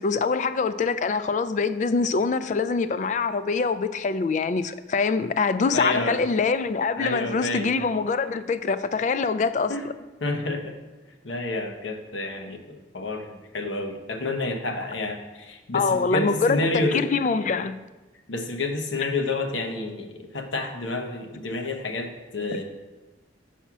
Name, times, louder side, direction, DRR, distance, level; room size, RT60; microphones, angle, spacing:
voice 1, 0.0-9.9 15.7-17.8, left 4 dB, 40° left, 13 dB, 0.3 m, -24 dB
voice 2, 5.7-6.2 7.0-7.7 9.7-9.9 10.2-10.8 11.2-17.1 18.3-22.6, left 2 dB, 90° left, 4 dB, 0.9 m, -29 dB
7.2 x 4.2 x 5.9 m, 1.2 s
head